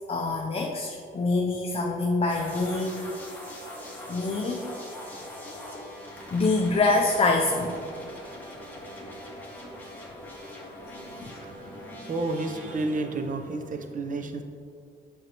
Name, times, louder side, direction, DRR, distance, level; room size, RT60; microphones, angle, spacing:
voice 1, 0.1-3.2 4.1-4.7 6.3-7.7 11.2-11.3, left 3 dB, 30° left, 0 dB, 0.6 m, -25 dB
sound 1, 2.3-13.7, left 1 dB, 10° left, 1.8 m, -42 dB
voice 2, 11.0-14.4, right 2 dB, 40° right, 6 dB, 0.7 m, -32 dB
8.0 x 6.2 x 3.0 m, 2.3 s
cardioid pair, 90°, 20 cm